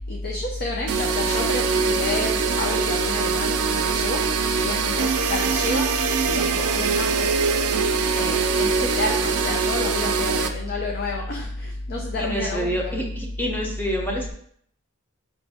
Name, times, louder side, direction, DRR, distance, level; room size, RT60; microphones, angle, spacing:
voice 1, 0.1-4.3 4.6-5.9 6.2-7.4 8.2-13.0, left 2 dB, 45° left, 0 dB, 0.5 m, -28 dB
sound 1, 0.9-10.5, right 5 dB, 80° right, 0.5 m, -23 dB
voice 2, 12.2-14.3, equal, 10° left, -1 dB, 0.7 m, -27 dB
4.9 x 2.6 x 3.4 m, 0.64 s
head